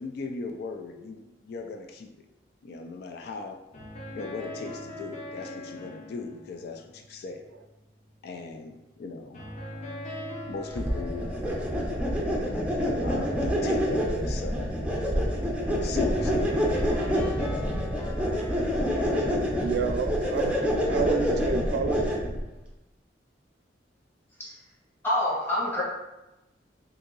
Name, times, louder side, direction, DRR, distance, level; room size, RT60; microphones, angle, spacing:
voice 1, 0.0-2.1 2.6-3.6 4.1-7.4 8.2-9.4 10.5-11.3 13.0-14.8 15.8-16.6, left 4 dB, 60° left, 5 dB, 0.3 m, -37 dB
sound 1, 3.7-8.6 9.3-13.1 16.0-21.5, left 1 dB, 40° left, 0.7 m, -42 dB
voice 2, 9.6-10.0 19.6-20.6 20.9-22.0, right 4 dB, 65° right, 6 dB, 0.3 m, -30 dB
sound 2, 10.7-22.4, equal, 5° right, 0.5 m, -27 dB
voice 3, 25.0-25.8, left 1 dB, 15° left, -7 dB, 1.1 m, -26 dB
2.8 x 2.7 x 3.8 m, 0.98 s
head